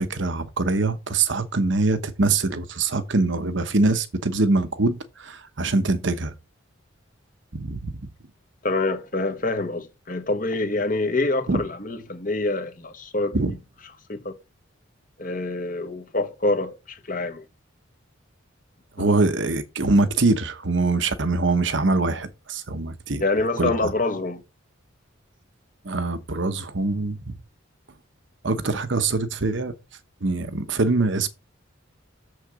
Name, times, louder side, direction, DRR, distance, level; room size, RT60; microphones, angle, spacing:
voice 1, 0.0-6.3 7.5-8.0 11.5-11.6 13.3-13.5 19.0-23.2 23.6-23.9 25.8-27.4 28.4-29.7 30.2-31.3, right 3 dB, 65° right, 1.0 m, -23 dB
voice 2, 8.6-13.6 14.1-14.3 15.2-17.4 19.0-19.1 23.2-24.4, left 2 dB, 40° left, 1.4 m, -26 dB
7.2 x 6.5 x 4.9 m
head